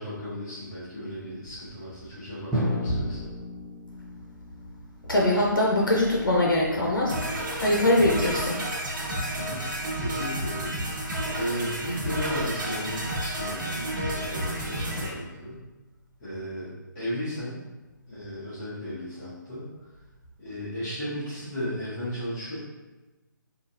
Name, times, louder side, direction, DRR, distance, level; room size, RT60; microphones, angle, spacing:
voice 1, 0.0-3.3 9.4-9.6 10.0-10.7 11.4-15.6 16.2-17.6 18.0-19.7 20.4-22.6, equal, 20° left, -13 dB, 1.3 m, -35 dB
Drum, 2.5-6.3, left 1 dB, ahead, 0.4 m, -33 dB
voice 2, 5.1-7.2 7.6-8.6, left 1 dB, 85° left, -3 dB, 0.7 m, -22 dB
sound 1, 7.1-15.1, right 1 dB, 70° right, 1.1 m, -31 dB
3.8 x 2.4 x 2.5 m, 1.2 s
figure-of-eight pair, 145°, 11 cm